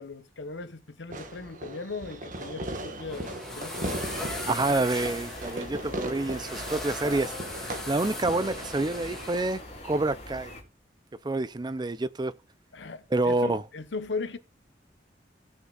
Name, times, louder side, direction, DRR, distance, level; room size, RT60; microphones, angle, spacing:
voice 1, 0.0-4.0 12.7-14.4, left 3 dB, 90° left, 1.0 m, -38 dB
Fireworks, 1.1-10.1, right 1 dB, 45° right, 1.5 m, -38 dB
sound 1, 2.8-9.6, left 1 dB, 5° left, 2.6 m, -39 dB
sound 2, 4.1-10.6, left 2 dB, 40° left, 3.1 m, -44 dB
voice 2, 4.5-7.3 7.6-10.5 11.2-12.3 13.1-13.6, right 2 dB, 25° right, 0.5 m, -28 dB
17.0 x 6.4 x 2.4 m
head